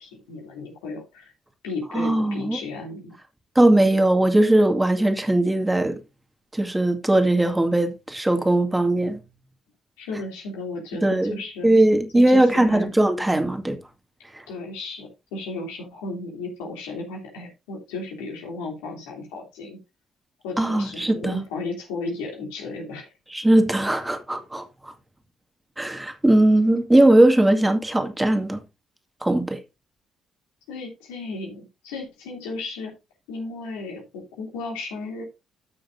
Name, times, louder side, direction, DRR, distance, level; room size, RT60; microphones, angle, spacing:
voice 1, 0.0-1.3 1.6-3.1 10.0-11.7 12.1-12.9 14.5-19.8 20.4-23.1 30.7-32.9 33.3-35.2, left 3 dB, 80° left, 3.1 m, -34 dB
voice 2, 1.9-2.6 3.6-6.0 6.5-9.2 11.0-13.8 14.3-14.5 20.6-21.4 23.3-24.9 25.8-28.6 29.2-29.6, right 1 dB, 15° right, 2.3 m, -19 dB
13.5 x 6.5 x 2.7 m
hypercardioid pair, 50°, 0 cm